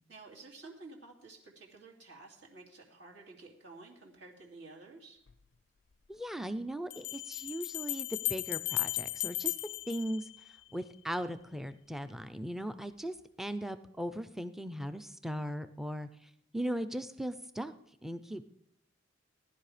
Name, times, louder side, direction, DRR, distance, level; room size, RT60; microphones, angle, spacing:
voice 1, 0.1-5.2, right 3 dB, 60° right, -2 dB, 2.7 m, -52 dB
sound 1, 5.3-5.4 6.9-10.9, left 18 dB, 55° left, 0.4 m, -36 dB
voice 2, 6.1-9.5 9.9-10.3 10.7-17.7 18.0-18.5, equal, ahead, 11 dB, 0.5 m, -38 dB
17.5 x 11.0 x 5.0 m, 0.79 s
head